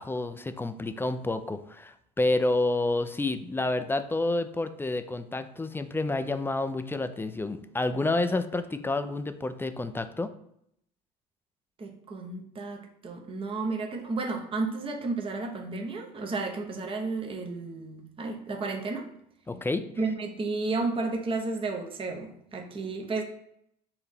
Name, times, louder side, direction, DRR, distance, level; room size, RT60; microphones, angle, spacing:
voice 1, 0.0-10.3 19.5-19.9, left 2 dB, 10° left, 10 dB, 0.4 m, -29 dB
voice 2, 11.8-19.1 20.0-23.2, right 3 dB, 25° right, 2 dB, 0.8 m, -32 dB
4.7 x 2.7 x 3.5 m, 0.73 s
hypercardioid pair, 75°, 20 cm